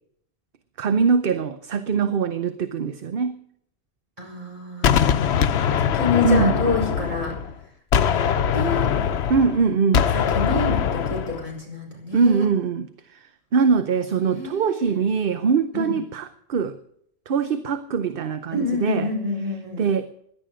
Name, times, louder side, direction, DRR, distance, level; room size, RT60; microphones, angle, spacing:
voice 1, 0.8-3.4 6.2-6.5 9.3-10.1 12.1-16.8 17.3-19.1 19.8-20.2, right 5 dB, 60° right, 0.9 m, -22 dB
voice 2, 4.2-7.3 8.1-8.3 8.5-8.9 10.1-12.5 14.2-14.8 15.7-16.0 18.5-19.8, left 3 dB, 35° right, 5.5 m, -28 dB
Gunshot gunfire, 4.8-7.5 7.9-11.5, left 8 dB, 85° left, 1.0 m, -22 dB
16.5 x 11.0 x 5.0 m
omnidirectional pair, 1.1 m